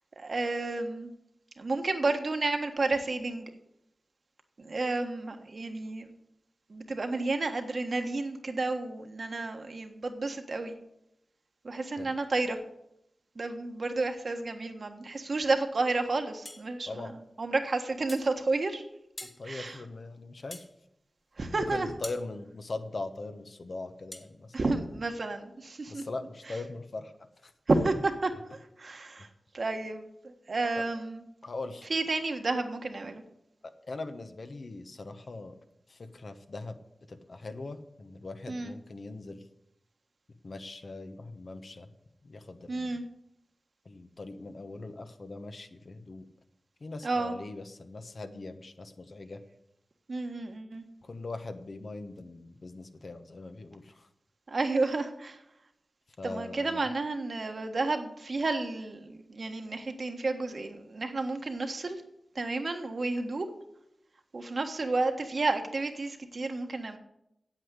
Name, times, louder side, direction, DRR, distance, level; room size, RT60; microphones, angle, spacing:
voice 1, 0.2-1.1 1.6-3.5 4.6-6.1 6.7-10.7 11.6-12.6 13.3-17.1 17.4-18.8 19.4-19.8 21.4-21.9 24.5-26.0 27.7-27.9 28.2-28.3 28.8-29.3 29.5-31.2 31.9-33.2 38.5-38.7 42.7-43.0 47.0-47.3 50.1-50.8 54.5-55.4 56.2-62.0 62.3-63.5 64.3-67.0, right 3 dB, 60° right, 5 dB, 1.4 m, -31 dB
sound 1, 16.4-16.7 18.1-18.3 19.2-19.4 20.5-20.7 22.0-22.2 24.1-24.3, left 1 dB, 35° left, 1.8 m, -43 dB
voice 2, 19.4-20.6 21.5-24.5 25.9-27.1 27.4-27.8 30.7-30.8 31.4-31.9 33.6-35.5 35.9-36.8 37.1-39.4 40.4-41.9 42.2-43.0 43.8-46.3 46.8-49.4 51.0-54.1 56.2-56.9, left 3 dB, 65° left, 7 dB, 1.1 m, -41 dB
8.7 x 8.0 x 8.3 m, 0.82 s
cardioid pair, 50°, 0 cm